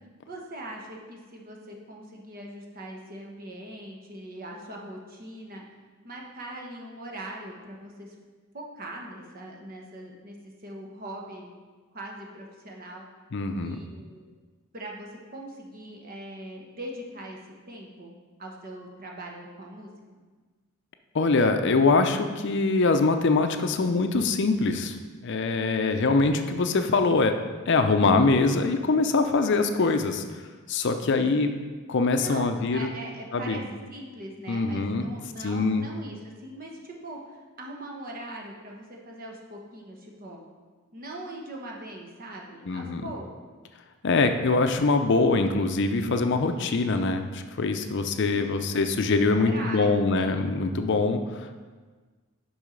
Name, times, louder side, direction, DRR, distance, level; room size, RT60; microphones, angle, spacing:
voice 1, 0.3-5.6 6.0-8.1 8.5-11.5 11.9-13.0 13.6-14.2 14.7-17.4 17.7-19.9 31.0-31.3 32.2-33.6 33.9-40.4 40.9-43.3 48.2-48.5 49.2-50.7, right 1 dB, 40° right, 0 dB, 1.2 m, -41 dB
voice 2, 13.3-13.8 21.1-25.0 25.2-27.3 27.7-30.2 30.7-31.5 31.9-32.9 33.3-33.6 34.5-35.1 35.4-35.9 42.7-43.0 44.0-51.5, left 3 dB, 55° left, 7 dB, 0.5 m, -23 dB
7.0 x 5.5 x 5.1 m, 1.4 s
head